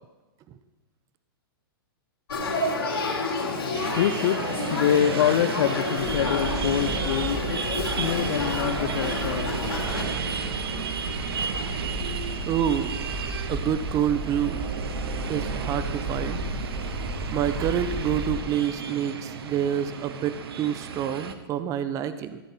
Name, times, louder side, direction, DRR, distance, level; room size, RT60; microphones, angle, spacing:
Male speech man speaking / Child speech kid speaking / Conversation, 2.3-10.0, left 2 dB, 85° left, 3.1 m, -30 dB
voice 1, 3.3-4.4 4.7-9.5, left 11 dB, 60° left, 9 dB, 0.5 m, -26 dB
sound 1, 3.7-21.3, right 6 dB, 80° right, 1.1 m, -33 dB
sound 2, 6.0-18.3, right 1 dB, 10° right, 4.8 m, -34 dB
voice 2, 12.5-13.0 13.5-14.6 15.3-16.4 17.3-22.4, right 9 dB, 25° right, 12 dB, 0.6 m, -27 dB
14.5 x 8.9 x 4.2 m, 1.1 s
hypercardioid pair, 135°, 13 cm